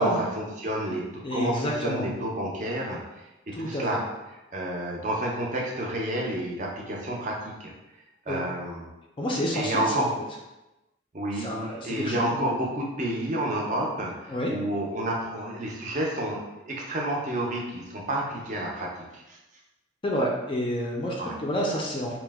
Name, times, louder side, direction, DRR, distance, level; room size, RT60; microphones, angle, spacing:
voice 1, 0.4-3.0 3.5-4.0 4.3-7.7 8.3-8.9 9.5-10.1 11.1-16.4 16.6-19.4 21.2-21.4, right 1 dB, 40° right, -2 dB, 0.5 m, -30 dB
voice 2, 1.2-2.1 3.5-4.0 8.3-8.4 9.2-10.1 11.4-12.5 14.3-14.5 20.0-22.2, equal, 25° left, -2 dB, 0.4 m, -29 dB
2.8 x 2.0 x 3.3 m, 1.0 s
head